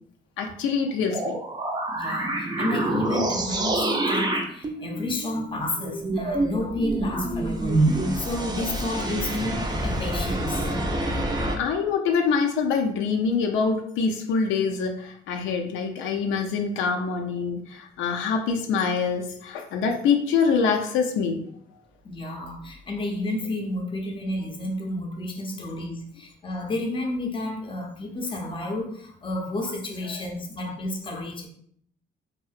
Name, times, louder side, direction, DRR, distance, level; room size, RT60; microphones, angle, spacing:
voice 1, 0.4-1.4 11.6-21.4, left 5 dB, 85° left, 2 dB, 0.4 m, -25 dB
sound 1, 1.1-11.6, right 2 dB, 20° right, 0.4 m, -27 dB
voice 2, 1.9-7.8 8.1-10.7 22.0-31.5, left 2 dB, 25° left, 1 dB, 0.6 m, -31 dB
2.7 x 2.0 x 2.4 m, 0.64 s
cardioid pair, 90°, 20 cm